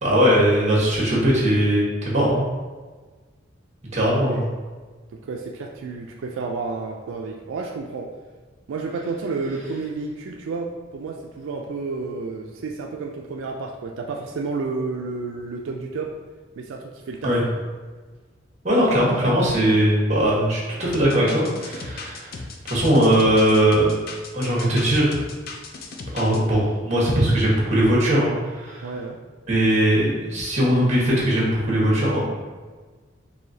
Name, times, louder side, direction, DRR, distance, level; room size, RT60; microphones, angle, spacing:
voice 1, 0.0-2.4 3.9-4.4 17.2-17.4 18.6-22.3 22.6-23.9 24.3-25.2 26.1-28.8 29.5-32.2, equal, 35° right, -5 dB, 1.2 m, -20 dB
voice 2, 5.1-8.1 8.7-16.1 16.6-17.6 28.8-29.2, right 4 dB, 85° right, 1 dB, 0.4 m, -31 dB
sound 1, 20.9-26.4, left 3 dB, 50° left, 0.4 m, -36 dB
4.8 x 2.7 x 2.7 m, 1.4 s
head